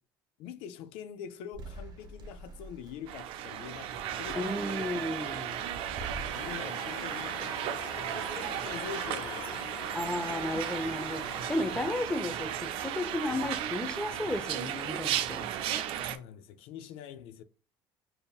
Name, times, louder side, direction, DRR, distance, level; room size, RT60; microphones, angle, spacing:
voice 1, 0.4-4.9 5.2-5.5 6.3-9.6 16.1-17.4, left 8 dB, 80° left, 0.4 m, -45 dB
sound 1, 1.5-6.6, right 2 dB, 45° right, 0.8 m, -47 dB
sound 2, 3.1-16.2, right 10 dB, 70° right, 0.4 m, -35 dB
voice 2, 4.4-5.6 9.9-11.2 11.5-15.5, left 1 dB, 10° left, 0.7 m, -33 dB
sound 3, 6.3-12.0, left 4 dB, 60° left, 1.4 m, -44 dB
5.1 x 2.8 x 2.3 m
supercardioid pair, 80°, 9 cm